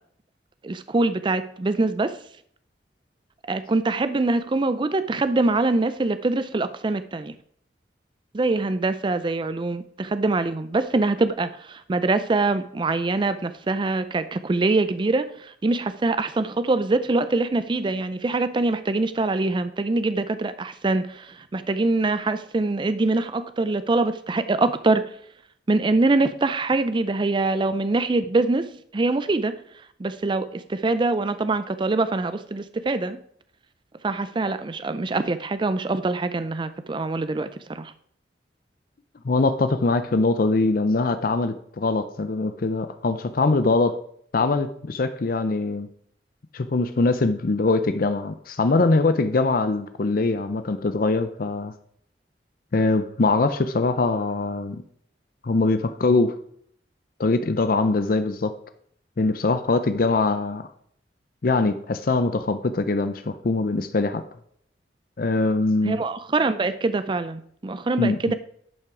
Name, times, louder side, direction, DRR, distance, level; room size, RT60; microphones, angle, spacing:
voice 1, 0.6-2.2 3.5-7.3 8.3-25.0 25.7-29.5 30.0-33.2 34.0-37.9 65.8-68.3, right 3 dB, 25° right, 12 dB, 0.4 m, -24 dB
voice 2, 39.2-44.0 44.3-45.9 46.5-51.7 52.7-54.8 55.4-56.3 57.2-58.5 59.2-60.7 61.4-64.2 65.2-66.0 68.0-68.3, left 3 dB, 50° left, 10 dB, 0.5 m, -22 dB
10.5 x 5.7 x 4.8 m, 0.65 s
head